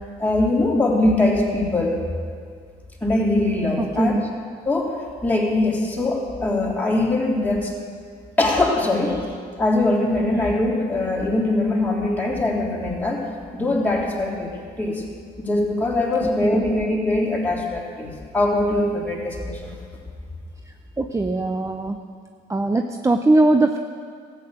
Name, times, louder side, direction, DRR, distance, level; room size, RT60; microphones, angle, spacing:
voice 1, 0.2-2.2 3.0-4.2 4.6-4.9 5.2-7.7 8.4-9.1 9.6-13.2 13.5-14.5 14.8-15.0 15.4-19.7, left 2 dB, 10° left, -4 dB, 3.3 m, -22 dB
voice 2, 3.8-4.2 16.2-16.6 21.0-22.0 22.5-23.8, right 2 dB, 15° right, 5 dB, 0.6 m, -21 dB
13.5 x 8.9 x 6.5 m, 2.1 s
supercardioid pair, 75°, 18 cm